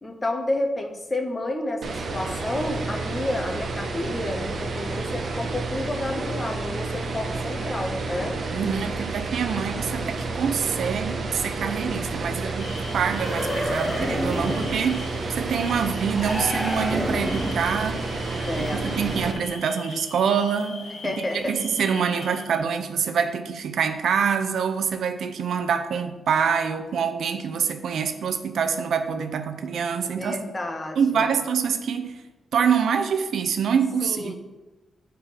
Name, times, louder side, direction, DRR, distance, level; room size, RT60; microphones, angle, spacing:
voice 1, 0.0-8.4 18.4-19.2 21.0-21.5 30.0-31.4 34.0-34.3, left 1 dB, 20° left, 4 dB, 1.0 m, -30 dB
sound 1, 1.8-19.3, right 3 dB, 55° right, 1.0 m, -30 dB
voice 2, 8.5-18.1 18.6-30.4 31.0-32.2 32.5-34.3, right 6 dB, 80° right, 8 dB, 0.7 m, -25 dB
sound 2, 12.6-22.6, left 3 dB, 90° left, 1.6 m, -41 dB
sound 3, 13.2-14.8 16.1-17.7, equal, ahead, 1.2 m, -29 dB
8.7 x 4.5 x 5.1 m, 1.1 s
wide cardioid pair, 140°, 0 cm